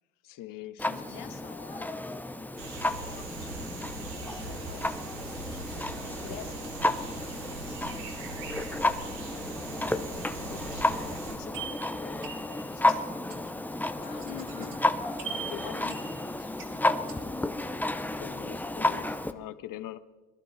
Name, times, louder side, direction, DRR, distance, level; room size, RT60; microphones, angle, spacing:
voice 1, 0.2-1.4 14.3-14.8 18.2-20.0, left 14 dB, 45° left, 15 dB, 0.8 m, -43 dB
voice 2, 0.8-2.1 2.4-9.5 10.5-14.5 15.2-17.6, left 9 dB, 80° left, 5 dB, 1.8 m, -50 dB
Clock, 0.8-19.3, left 2 dB, 5° left, 0.6 m, -32 dB
sound 1, 2.6-11.4, right 3 dB, 80° right, 3.0 m, -41 dB
sound 2, 11.5-17.2, right 7 dB, 40° right, 2.9 m, -43 dB
23.0 x 12.0 x 3.3 m, 1.3 s
hypercardioid pair, 80°, 48 cm